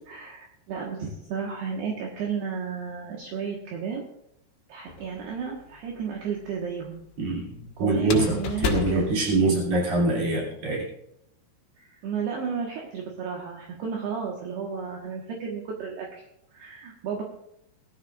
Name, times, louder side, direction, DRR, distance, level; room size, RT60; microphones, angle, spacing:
voice 1, 0.1-4.0 4.7-7.0 7.8-9.2 11.8-16.1 16.5-17.2, right 6 dB, 70° right, -1 dB, 3.2 m, -33 dB
sound 1, 4.9-5.6 8.0-10.0, left 6 dB, 90° left, 4.0 m, -32 dB
voice 2, 7.2-7.5 7.8-10.9, right 3 dB, 35° right, -3 dB, 3.9 m, -24 dB
18.5 x 13.5 x 2.5 m, 0.77 s
omnidirectional pair, 5.4 m